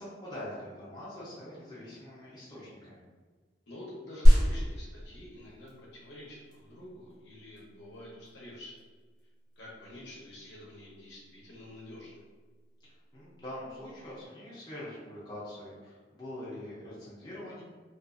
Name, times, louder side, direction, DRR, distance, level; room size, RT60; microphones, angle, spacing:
voice 1, 0.0-3.0 12.8-17.6, left 1 dB, 20° left, -9 dB, 0.6 m, -44 dB
voice 2, 3.7-8.7 9.6-12.2, left 1 dB, 70° left, -5 dB, 0.8 m, -48 dB
sound 1, 4.3-14.2, equal, 20° right, 0.7 m, -29 dB
2.5 x 2.4 x 2.4 m, 1.4 s
head